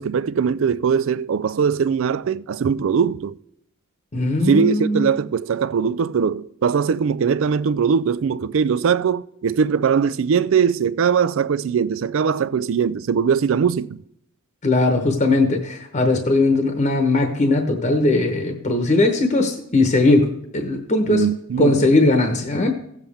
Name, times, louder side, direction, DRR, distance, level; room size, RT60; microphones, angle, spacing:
voice 1, 0.0-3.4 4.5-14.0 21.0-21.8, right 6 dB, 65° right, 0.4 m, -21 dB
voice 2, 4.1-5.1 14.6-20.3 20.5-21.2 21.6-22.7, left 2 dB, 35° left, 1.0 m, -19 dB
16.5 x 7.3 x 3.5 m
head